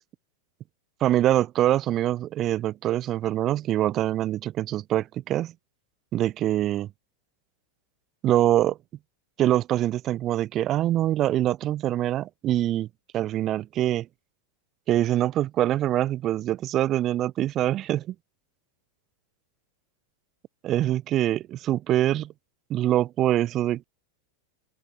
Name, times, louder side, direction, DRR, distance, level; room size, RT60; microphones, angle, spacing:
voice 1, 1.0-5.5 6.1-6.9 8.2-8.8 9.4-12.9 13.1-14.1 14.9-18.1 20.6-22.3 22.7-23.8, right 13 dB, 30° right, 0.6 m, -24 dB
open air
figure-of-eight pair, 90°, 0 cm